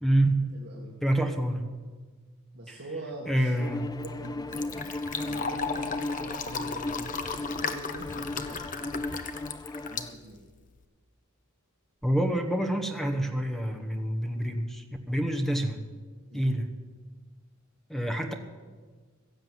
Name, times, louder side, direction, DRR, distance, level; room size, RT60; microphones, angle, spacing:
voice 1, 0.0-0.5 1.0-1.7 2.7-2.8 3.3-4.0 12.0-15.8 16.3-16.7 17.9-18.3, right 1 dB, ahead, 5 dB, 1.1 m, -27 dB
voice 2, 0.5-0.9 2.5-3.5 4.0-9.0 9.9-10.4 16.3-16.5, right 1 dB, 55° right, -4 dB, 2.0 m, -44 dB
Bowed string instrument, 3.6-10.2, left 2 dB, 20° left, 0.4 m, -36 dB
Fill (with liquid), 3.7-10.8, left 5 dB, 40° left, 0.9 m, -36 dB
16.0 x 7.7 x 9.4 m, 1.4 s
head